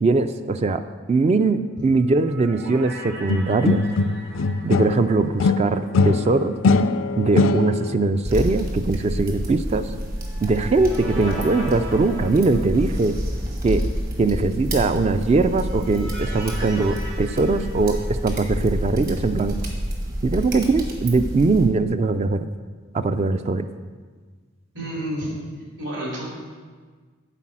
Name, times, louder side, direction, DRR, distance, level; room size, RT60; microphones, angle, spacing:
voice 1, 0.0-0.8 1.1-3.8 4.6-6.5 7.2-9.9 10.4-13.1 13.6-13.8 14.2-18.0 18.2-19.6 20.2-22.4 22.9-23.6, right 3 dB, 30° right, 10 dB, 0.3 m, -21 dB
sound 1, 1.8-6.1 6.4-6.5 10.0-13.2 15.2-18.6, right 1 dB, 85° right, 2.5 m, -39 dB
sound 2, 3.3-5.1 5.4-8.0, left 3 dB, 70° left, 0.4 m, -21 dB
sound 3, 8.3-21.7, equal, 50° right, 1.5 m, -29 dB
voice 2, 24.7-25.3 25.8-26.3, right 1 dB, 65° right, -4 dB, 2.7 m, -29 dB
10.0 x 4.1 x 7.4 m, 1.5 s
head